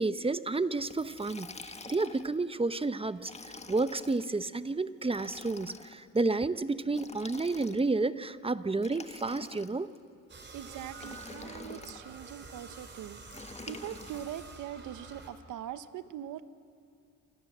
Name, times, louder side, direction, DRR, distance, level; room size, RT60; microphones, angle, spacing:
voice 1, 0.0-1.5 1.9-3.3 3.7-9.9, right 3 dB, 20° right, 13 dB, 0.9 m, -30 dB
Liquid, 0.9-2.3 3.2-4.3 5.1-6.0 6.9-8.0 8.8-10.0 11.0-12.0 13.3-14.3, left 3 dB, 20° left, 1.6 m, -46 dB
sound 1, 10.3-15.3, right 4 dB, 35° right, 4.3 m, -48 dB
voice 2, 10.5-13.2 13.7-16.4, right 11 dB, 80° right, 13 dB, 1.1 m, -42 dB
28.5 x 26.5 x 7.5 m, 2.5 s
cardioid pair, 90°, 30 cm